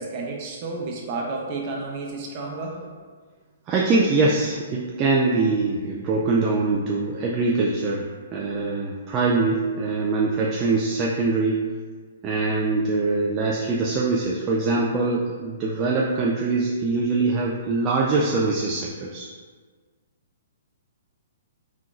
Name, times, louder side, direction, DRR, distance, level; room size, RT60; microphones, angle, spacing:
voice 1, 0.0-2.8, right 3 dB, 40° right, -1 dB, 0.9 m, -31 dB
voice 2, 3.7-11.6 12.2-19.3, right 3 dB, 25° right, -3 dB, 0.4 m, -23 dB
4.4 x 3.6 x 2.5 m, 1.5 s
hypercardioid pair, 130°, 0 cm